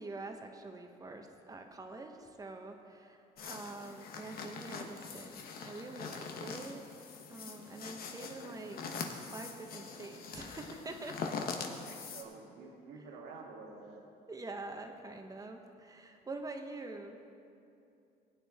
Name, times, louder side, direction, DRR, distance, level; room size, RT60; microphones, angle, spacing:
voice 1, 0.0-6.8 7.3-11.2 14.3-17.2, right 2 dB, 20° right, 4 dB, 1.2 m, -46 dB
sound 1, 3.4-12.2, left 5 dB, 60° left, 1.2 m, -43 dB
voice 2, 11.6-14.0, right 4 dB, 85° right, -1 dB, 1.8 m, -50 dB
18.5 x 9.4 x 3.6 m, 2.6 s
cardioid pair, 110°, 17 cm